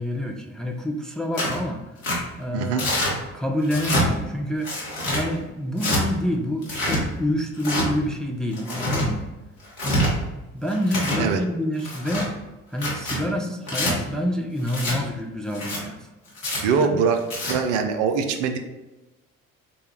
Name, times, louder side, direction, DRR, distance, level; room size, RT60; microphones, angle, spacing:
voice 1, 0.0-1.8 2.4-3.0 3.3-4.8 5.1-9.2 9.8-10.1 10.5-12.3 12.7-16.1 16.8-17.0, equal, ahead, 3 dB, 0.4 m, -27 dB
Tearing, 1.3-1.6 2.0-2.2 2.8-3.1 3.6-4.0 4.6-5.2 5.8-6.0 6.6-7.0 7.6-7.9 8.5-9.1 9.6-10.1 10.7-11.2 11.8-12.3 12.7-13.2 13.7-13.9 14.7-15.0 15.5-15.8 16.4-16.6 17.2-17.5, left 1 dB, 80° left, 1.2 m, -25 dB
voice 2, 2.5-2.8 11.2-11.4 16.6-17.2 17.5-18.6, right 6 dB, 65° right, 7 dB, 0.6 m, -22 dB
6.7 x 2.3 x 3.0 m, 1.1 s
figure-of-eight pair, 55°, 40 cm